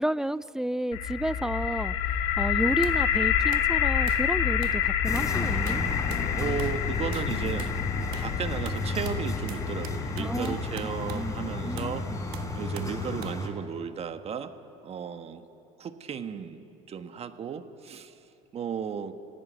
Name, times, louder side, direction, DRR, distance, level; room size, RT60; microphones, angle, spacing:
voice 1, 0.0-1.9 2.4-5.8 10.2-10.6 11.1-11.3 11.7-12.0, right 1 dB, 5° right, 18 dB, 0.5 m, -31 dB
sound 1, 0.9-12.8, left 9 dB, 75° left, 1.9 m, -29 dB
sound 2, 2.8-3.0 3.5-3.7 4.1-4.3 4.6-4.8 5.2-5.4 5.7-6.3 6.6-6.8 7.1-7.3 7.6-7.8 8.1-8.4 8.7-11.3 11.8-12.0 12.3-13.0 13.2-13.4, right 13 dB, 70° right, 1.5 m, -45 dB
sound 3, 5.0-13.5, left 2 dB, 20° left, 4.1 m, -33 dB
voice 2, 6.4-7.7 8.2-12.1 12.5-14.5 14.8-15.4 15.8-18.2 18.5-19.2, right 7 dB, 40° right, 9 dB, 1.5 m, -35 dB
26.5 x 17.0 x 9.5 m, 2.8 s
supercardioid pair, 85°, 16 cm